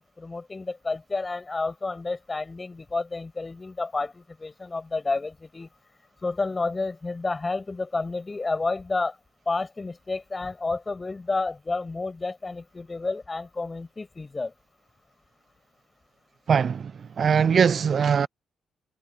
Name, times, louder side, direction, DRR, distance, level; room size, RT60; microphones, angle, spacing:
voice 1, 0.0-5.7 6.2-9.2 9.5-14.5, left 3 dB, 25° left, 7.0 m, -30 dB
voice 2, 16.5-16.9 17.2-18.3, right 6 dB, 50° right, 0.3 m, -21 dB
cardioid pair, 90°, 0 cm